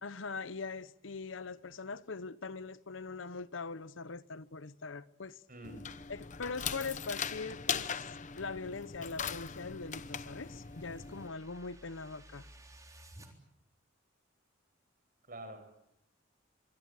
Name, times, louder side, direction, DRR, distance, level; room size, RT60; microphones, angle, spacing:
voice 1, 0.0-5.4 6.1-8.1 8.4-12.5, left 4 dB, 75° left, 0.9 m, -42 dB
voice 2, 5.5-5.9 15.3-15.8, right 1 dB, 45° right, 5.8 m, -47 dB
sound 1, 5.6-11.3, left 7 dB, 40° left, 1.0 m, -40 dB
sound 2, 9.7-13.3, right 1 dB, 15° right, 3.6 m, -57 dB
24.5 x 23.0 x 8.2 m
head